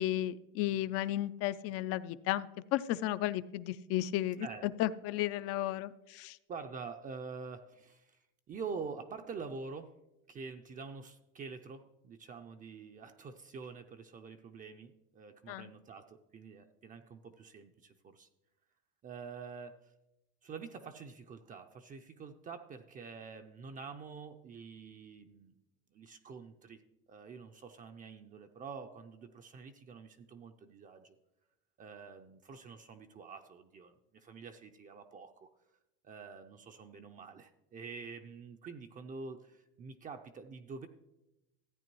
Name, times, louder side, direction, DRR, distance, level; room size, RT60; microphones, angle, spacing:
voice 1, 0.0-4.5 4.8-6.4 15.5-15.7, left 13 dB, 50° left, 15 dB, 0.5 m, -34 dB
voice 2, 6.5-9.9 10.3-18.3 19.0-19.9 20.4-25.5 25.9-26.8 27.1-31.2 31.8-35.5 36.0-40.9, right 5 dB, 25° right, 6 dB, 0.5 m, -47 dB
14.0 x 9.0 x 3.0 m, 0.94 s
supercardioid pair, 120°, 30 cm